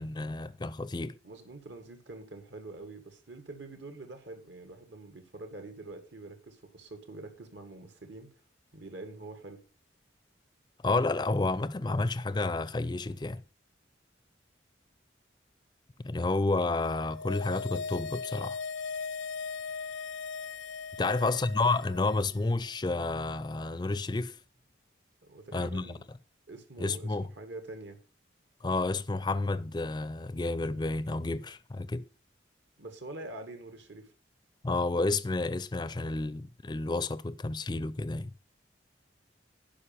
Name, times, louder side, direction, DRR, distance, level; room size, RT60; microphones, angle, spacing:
voice 1, 0.0-1.2 10.8-13.4 16.0-18.6 21.0-24.4 25.5-26.0 26.8-27.3 28.6-32.0 34.6-38.3, left 3 dB, 25° left, 0.4 m, -30 dB
voice 2, 1.2-8.3 8.7-9.6 25.2-26.0 26.5-28.0 32.8-34.1, right 2 dB, 70° right, 1.9 m, -45 dB
sound 1, 16.9-22.4 22.6-22.7, left 5 dB, 90° left, 0.6 m, -38 dB
11.5 x 5.3 x 7.3 m
head